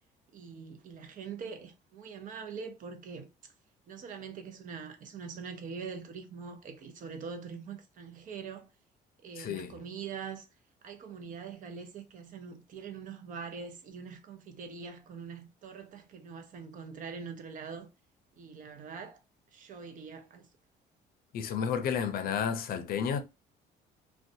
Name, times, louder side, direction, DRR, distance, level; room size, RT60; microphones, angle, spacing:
voice 1, 0.3-3.3 3.9-8.7 9.2-10.5 10.8-17.9 18.4-19.2 19.5-20.5, right 6 dB, 50° right, 0.7 m, -43 dB
voice 2, 9.4-9.8 21.3-23.2, left 7 dB, 60° left, 0.5 m, -31 dB
2.5 x 2.2 x 2.6 m
cardioid pair, 110°, 17 cm